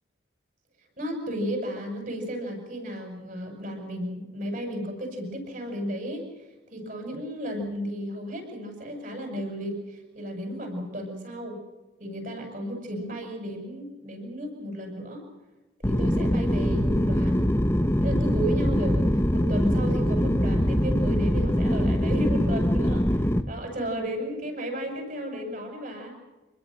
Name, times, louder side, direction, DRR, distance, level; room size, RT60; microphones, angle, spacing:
voice 1, 1.0-6.2 6.7-11.6 12.0-15.2 15.8-17.5 18.0-26.2, equal, 45° right, 4 dB, 7.5 m, -33 dB
sound 1, 15.8-23.4, equal, 15° left, 1.0 m, -23 dB
26.5 x 21.0 x 6.6 m, 1.1 s
head